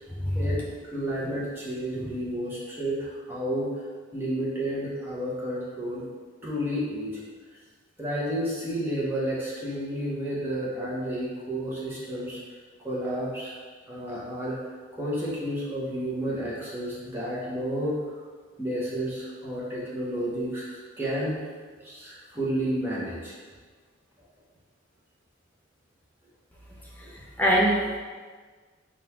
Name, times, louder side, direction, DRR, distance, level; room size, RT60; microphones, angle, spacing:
voice 1, 0.9-3.7 4.1-6.1 6.4-7.2 8.0-12.4 12.8-13.5 13.9-14.6 14.9-18.0 18.6-21.5 21.8-23.4 27.0-27.1, equal, 10° right, -8 dB, 0.9 m, -31 dB
voice 2, 27.0-28.0, equal, 10° left, -4 dB, 0.4 m, -24 dB
3.8 x 2.5 x 4.3 m, 1.5 s
head